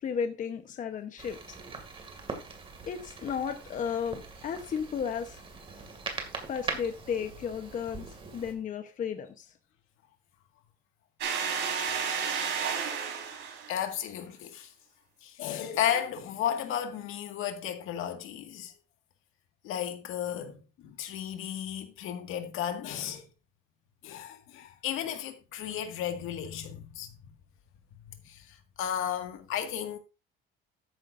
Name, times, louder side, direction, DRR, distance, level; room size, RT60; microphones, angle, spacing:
voice 1, 0.0-1.6 2.9-5.4 6.5-8.0 8.3-9.5, left 7 dB, 40° left, 1.0 m, -34 dB
sound 1, 1.2-8.5, right 4 dB, 25° right, 2.3 m, -41 dB
sound 2, 11.2-13.7, right 6 dB, 55° right, 4.2 m, -31 dB
voice 2, 13.7-14.7 15.2-18.7 19.6-23.3 24.0-27.2 28.0-30.0, left 10 dB, 75° left, 1.9 m, -34 dB
13.0 x 9.8 x 2.6 m
cardioid pair, 160°, 21 cm